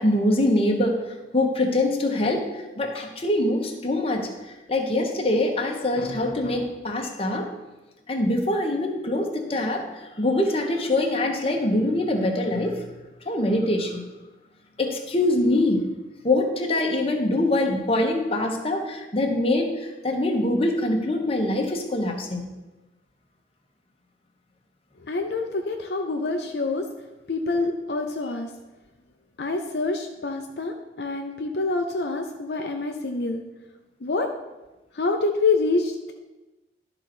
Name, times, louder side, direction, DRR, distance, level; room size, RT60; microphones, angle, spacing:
voice 1, 0.0-4.3 4.7-7.5 8.1-9.8 10.2-12.9 13.2-14.0 14.8-15.9 16.2-22.5, left 1 dB, 35° left, 2 dB, 1.2 m, -24 dB
voice 2, 25.1-26.8 27.3-28.5 29.4-33.4 34.0-34.3 34.9-36.1, left 3 dB, 65° left, 3 dB, 0.6 m, -26 dB
12.0 x 4.0 x 6.0 m, 1.1 s
head